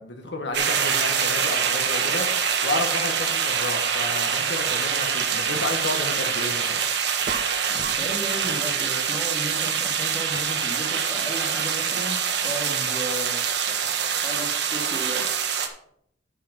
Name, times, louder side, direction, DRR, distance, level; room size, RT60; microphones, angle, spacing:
voice 1, 0.0-2.3 2.6-6.8, left 2 dB, 70° left, 4 dB, 1.4 m, -31 dB
sound 1, 0.5-15.7, right 7 dB, 65° right, 1.3 m, -25 dB
sound 2, 7.3-8.1 8.4-8.7, right 5 dB, 45° right, 0.7 m, -35 dB
voice 2, 7.7-12.2 12.4-13.5 14.2-15.3, right 1 dB, 20° left, 1 dB, 2.1 m, -34 dB
10.0 x 5.7 x 5.9 m, 0.72 s
head